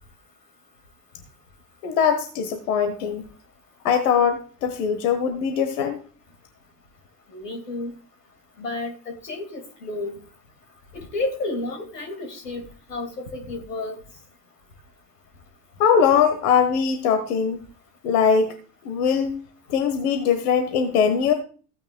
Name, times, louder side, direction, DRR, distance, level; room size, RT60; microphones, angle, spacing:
voice 1, 1.8-3.2 3.8-6.0 15.8-17.6 18.0-18.6 18.8-19.4 19.7-21.3, left 7 dB, 70° left, 8 dB, 1.3 m, -21 dB
voice 2, 7.3-7.9 8.6-10.2 10.9-12.6 12.9-14.0, left 2 dB, 90° left, 5 dB, 2.3 m, -31 dB
15.5 x 9.0 x 2.2 m, 0.40 s
hypercardioid pair, 75°, 47 cm